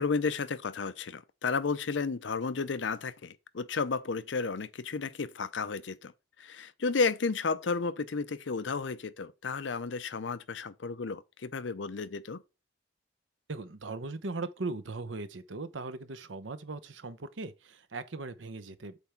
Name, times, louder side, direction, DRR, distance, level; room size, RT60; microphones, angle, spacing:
voice 1, 0.0-6.1 6.4-12.4, left 4 dB, 75° left, 0.6 m, -32 dB
voice 2, 13.5-19.0, right 3 dB, 90° right, 0.9 m, -39 dB
8.2 x 3.5 x 5.8 m
head